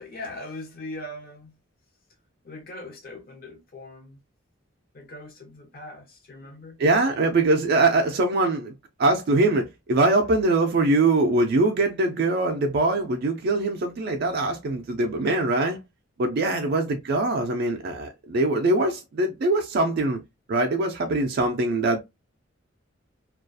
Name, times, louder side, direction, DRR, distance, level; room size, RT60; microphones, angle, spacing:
voice 1, 0.0-1.6 2.4-4.2 4.9-6.8 16.5-16.7, left 2 dB, 45° left, 0.7 m, -40 dB
voice 2, 6.8-8.7 9.0-15.8 16.2-20.2 20.5-22.0, right 2 dB, 50° right, 0.3 m, -22 dB
2.3 x 2.3 x 2.5 m
head